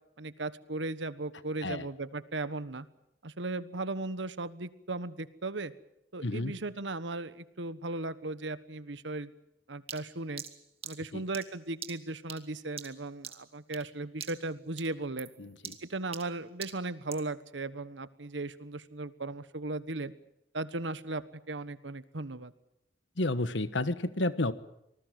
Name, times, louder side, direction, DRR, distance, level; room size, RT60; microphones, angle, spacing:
voice 1, 0.2-2.9 3.2-5.7 6.1-9.3 9.7-10.4 10.8-15.3 15.8-20.1 20.5-22.5, right 2 dB, 80° right, 15 dB, 1.4 m, -37 dB
voice 2, 6.2-6.5 11.1-11.2 15.4-15.8 23.2-24.5, left 2 dB, 80° left, 14 dB, 1.4 m, -31 dB
sound 1, 9.9-13.9 14.2-14.5 14.8-17.3, right 8 dB, 35° right, 2.1 m, -45 dB
26.0 x 20.0 x 7.7 m, 0.83 s
head